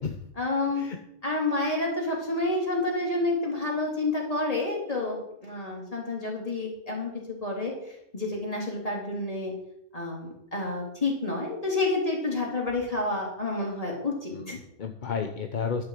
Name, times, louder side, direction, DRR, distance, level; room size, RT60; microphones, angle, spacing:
voice 1, 0.4-0.9 1.2-7.1 7.4-7.7 8.1-9.5 9.9-14.6, left 2 dB, 25° left, -2 dB, 3.7 m, -29 dB
voice 2, 14.3-15.8, left 6 dB, 40° left, 5 dB, 0.8 m, -32 dB
12.0 x 6.6 x 7.7 m, 0.80 s
omnidirectional pair, 1.5 m